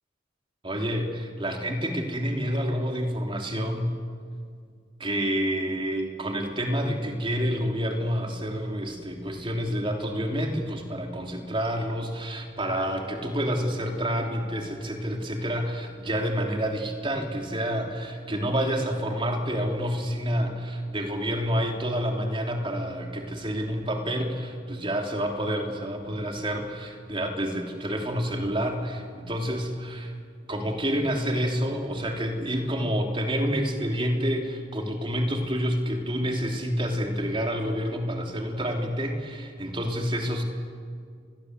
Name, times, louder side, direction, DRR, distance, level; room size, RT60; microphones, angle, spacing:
voice 1, 0.6-3.9 5.0-30.1 30.5-40.4, equal, 30° right, 2 dB, 3.3 m, -28 dB
29.0 x 22.0 x 8.1 m, 2.2 s
head